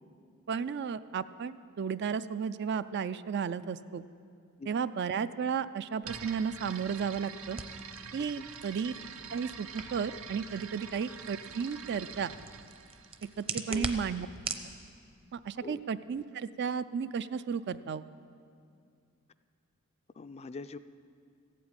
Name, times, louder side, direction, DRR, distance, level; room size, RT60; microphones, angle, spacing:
voice 1, 0.5-4.0 4.7-7.6 8.1-8.9 9.3-12.3 13.4-14.3 15.3-18.0, right 6 dB, 50° right, 14 dB, 0.3 m, -33 dB
sound 1, 6.0-13.8, right 6 dB, 70° right, 0.8 m, -46 dB
sound 2, 6.7-14.7, right 4 dB, 25° right, 0.7 m, -43 dB
voice 2, 20.2-20.8, left 3 dB, 30° left, 12 dB, 0.3 m, -43 dB
15.0 x 8.4 x 8.9 m, 2.3 s
head